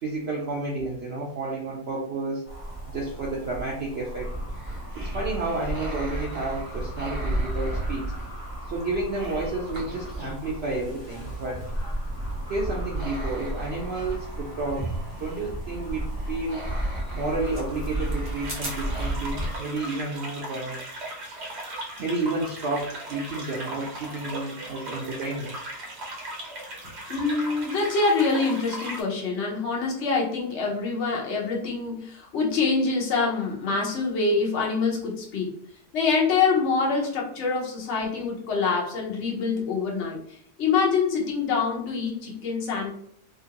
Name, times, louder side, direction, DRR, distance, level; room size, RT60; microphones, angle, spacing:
voice 1, 0.0-2.5 2.9-4.3 4.9-8.0 8.7-11.7 12.5-14.9 15.1-16.7 17.1-20.8 22.0-25.6, right 2 dB, 90° right, -2 dB, 0.5 m, -31 dB
sound 1, 2.4-19.6, right 1 dB, 20° left, 0.4 m, -33 dB
sound 2, 4.5-10.5 10.9-19.1, right 1 dB, 30° right, 0.6 m, -41 dB
sound 3, 18.4-29.0, right 1 dB, 50° right, 0.9 m, -38 dB
voice 2, 27.1-35.5 35.9-40.2 40.6-42.9, left 4 dB, 55° left, -2 dB, 1.0 m, -25 dB
2.9 x 2.5 x 2.8 m, 0.64 s
omnidirectional pair, 1.8 m